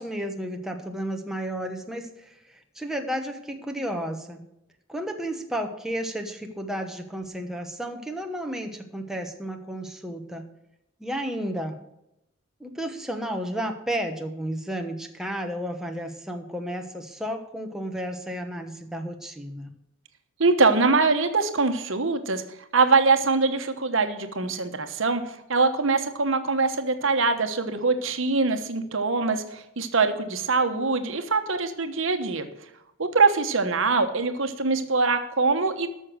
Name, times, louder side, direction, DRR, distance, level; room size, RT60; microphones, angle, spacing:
voice 1, 0.0-4.4 4.9-10.5 11.0-11.8 12.6-19.7, equal, ahead, 3 dB, 1.0 m, -32 dB
voice 2, 20.4-22.4 22.7-32.5 33.0-35.9, right 4 dB, 65° right, 7 dB, 1.2 m, -23 dB
13.0 x 6.4 x 6.3 m, 0.84 s
head